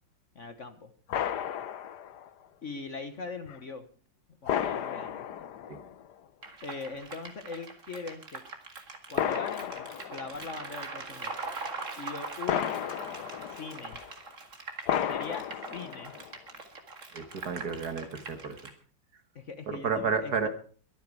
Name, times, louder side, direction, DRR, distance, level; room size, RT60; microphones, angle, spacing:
voice 1, 0.3-0.9 2.6-3.9 4.4-5.3 6.6-8.4 9.1-11.3 12.0-14.0 15.0-16.2 19.3-20.5, left 4 dB, 45° left, 10 dB, 1.4 m, -41 dB
sound 1, 1.1-2.3 3.5-3.6 4.5-6.1 7.0-7.1 9.1-10.6 12.5-14.1 14.9-16.4, left 9 dB, 65° left, 1.4 m, -33 dB
sound 2, 6.4-18.7, right 3 dB, 40° right, 2.3 m, -42 dB
voice 2, 17.1-18.6 19.7-20.5, right 5 dB, 55° right, 9 dB, 2.0 m, -31 dB
23.0 x 9.3 x 4.7 m, 0.42 s
omnidirectional pair, 2.0 m